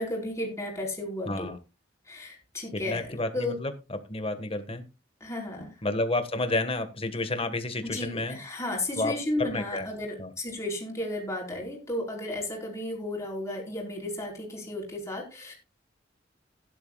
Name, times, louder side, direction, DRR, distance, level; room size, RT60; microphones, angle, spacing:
voice 1, 0.0-1.6 2.1-3.5 5.2-5.7 7.8-15.5, left 1 dB, 15° left, -1 dB, 4.8 m, -34 dB
voice 2, 1.2-1.6 2.7-3.7 4.1-4.8 5.8-8.4 9.0-9.1 9.4-9.9 10.2-10.3, left 2 dB, 30° left, 8 dB, 1.6 m, -30 dB
16.5 x 11.0 x 2.4 m, 0.26 s
head